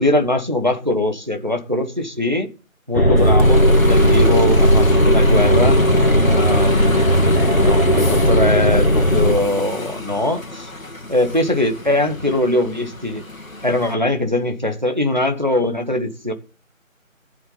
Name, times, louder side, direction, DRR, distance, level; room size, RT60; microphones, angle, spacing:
voice 1, 0.0-2.5 2.9-5.8 6.2-7.1 7.6-10.7 11.1-13.2 13.6-16.3, left 1 dB, 35° right, 1.1 m, -21 dB
sound 1, 2.9-9.3, equal, 45° left, 2.0 m, -15 dB
Bus, 3.2-13.9, left 2 dB, 70° left, 1.8 m, -30 dB
15.0 x 7.8 x 3.9 m
figure-of-eight pair, 180°, 42 cm